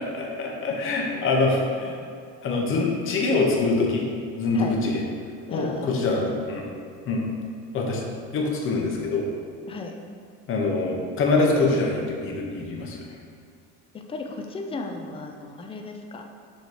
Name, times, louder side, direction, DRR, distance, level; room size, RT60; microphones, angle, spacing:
voice 1, 0.4-2.0 2.4-4.0 4.3-5.0 5.5-6.6 7.1-7.2 7.7-8.0 8.3-9.2 10.5-13.0, left 3 dB, 40° left, -1 dB, 0.9 m, -24 dB
voice 2, 5.5-6.0 6.3-6.4 9.7-9.9 14.1-16.2, left 3 dB, 15° left, 3 dB, 0.4 m, -35 dB
6.7 x 3.1 x 4.8 m, 2.2 s
cardioid pair, 135°, 32 cm